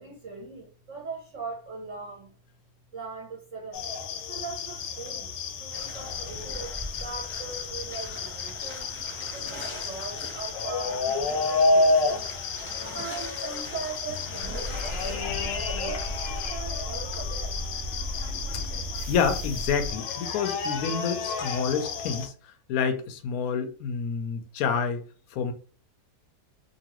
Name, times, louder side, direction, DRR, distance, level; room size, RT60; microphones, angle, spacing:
voice 1, 0.0-2.3 2.9-3.8 4.3-11.0 11.4-12.3 12.9-17.5, right 4 dB, 55° right, 1.0 m, -40 dB
sound 1, 3.7-22.3, left 3 dB, 90° left, 1.3 m, -30 dB
sound 2, 5.7-16.5, left 1 dB, 10° left, 0.7 m, -42 dB
sound 3, 14.4-19.9, equal, 80° right, 0.5 m, -35 dB
voice 2, 19.1-22.3 22.7-25.0 25.3-25.5, left 6 dB, 70° left, 0.9 m, -28 dB
2.9 x 2.7 x 2.9 m
omnidirectional pair, 1.8 m